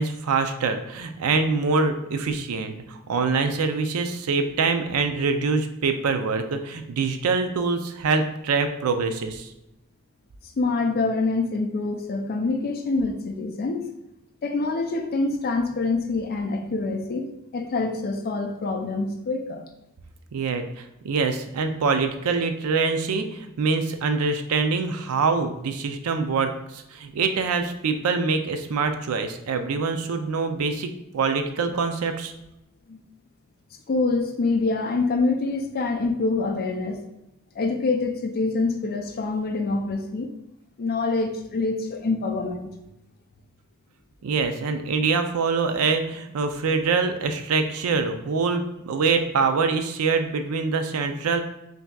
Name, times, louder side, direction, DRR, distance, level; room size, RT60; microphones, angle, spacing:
voice 1, 0.0-9.5 20.3-32.3 44.2-51.4, right 4 dB, 75° right, 8 dB, 0.4 m, -24 dB
voice 2, 10.6-13.9 14.4-19.6 32.9-33.0 33.9-37.0 37.6-40.3 40.8-42.7, left 3 dB, 45° left, 4 dB, 0.4 m, -26 dB
5.7 x 2.7 x 2.3 m, 0.88 s
head